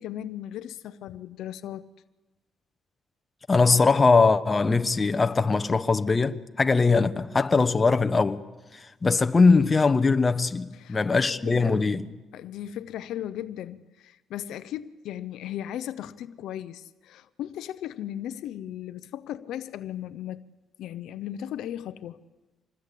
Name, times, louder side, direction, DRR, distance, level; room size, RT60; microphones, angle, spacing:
voice 1, 0.0-1.9 10.7-11.9 12.3-20.4 20.8-22.2, left 11 dB, 85° left, 0.7 m, -37 dB
voice 2, 3.5-8.4 8.7-12.1, left 4 dB, 25° left, 1.1 m, -21 dB
26.0 x 20.5 x 8.4 m
cardioid pair, 90°, 0 cm